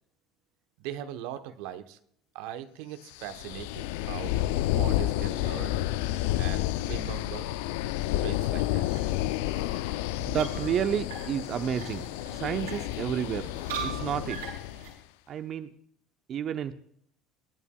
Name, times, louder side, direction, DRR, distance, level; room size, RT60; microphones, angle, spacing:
voice 1, 0.8-2.0 2.3-4.3 4.6-5.8 6.4-7.5 8.2-8.9, right 11 dB, 70° right, 9 dB, 1.0 m, -40 dB
sound 1, 3.2-14.9, left 14 dB, 75° left, 0.4 m, -30 dB
sound 2, 8.3-14.9, right 6 dB, 85° right, 6.1 m, -42 dB
voice 2, 10.2-12.0 12.3-13.5 13.8-14.4 15.3-15.7 16.3-16.7, right 9 dB, 50° right, 9 dB, 0.8 m, -30 dB
27.5 x 11.0 x 2.3 m, 0.67 s
hypercardioid pair, 70°, 0 cm